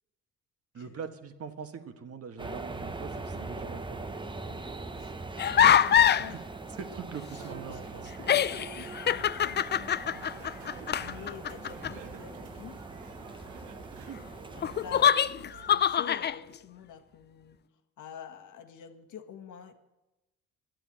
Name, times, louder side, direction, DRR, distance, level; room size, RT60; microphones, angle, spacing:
voice 1, 0.7-4.2 5.9-6.0 6.3-6.4 6.8-8.1 14.1-14.2, right 6 dB, 50° right, 7 dB, 1.5 m, -42 dB
sound 1, 2.4-15.1, right 3 dB, 15° right, 0.8 m, -42 dB
voice 2, 4.5-6.4 7.4-12.8 14.6-17.6 18.0-19.7, left 8 dB, 80° left, 6 dB, 1.5 m, -48 dB
sound 2, 5.4-6.3 7.7-7.8 8.2-11.9 14.6-16.4, left 9 dB, 35° left, 0.4 m, -24 dB
sound 3, 7.4-16.0, right 8 dB, 85° right, 1.2 m, -50 dB
12.0 x 9.0 x 8.8 m, 1.0 s
cardioid pair, 90°, 30 cm